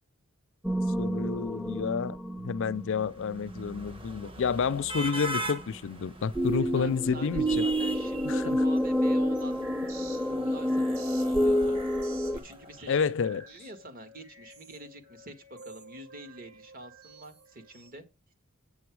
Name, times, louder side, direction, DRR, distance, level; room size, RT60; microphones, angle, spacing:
sound 1, 0.6-3.8 6.3-12.4, equal, ahead, 0.6 m, -28 dB
voice 1, 1.0-2.2 2.4-7.7 8.2-8.6 12.9-13.4, left 6 dB, 60° left, 0.4 m, -29 dB
sound 2, 2.8-13.1, equal, 25° right, 1.2 m, -41 dB
voice 2, 6.7-9.6 10.3-11.8 12.3-13.1 13.5-15.3 15.6-18.0, right 1 dB, 45° right, 1.8 m, -46 dB
sound 3, 9.0-17.9, right 3 dB, 75° right, 5.4 m, -51 dB
8.6 x 6.9 x 4.7 m
head